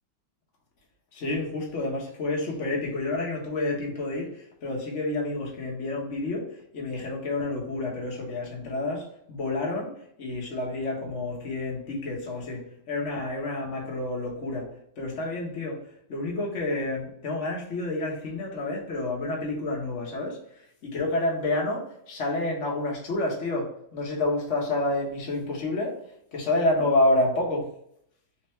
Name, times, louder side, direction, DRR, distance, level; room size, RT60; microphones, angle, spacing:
voice 1, 1.1-15.8 16.1-26.0 26.3-27.7, left 2 dB, 45° left, 1.2 m, -29 dB
4.4 x 2.6 x 3.0 m
omnidirectional pair, 2.1 m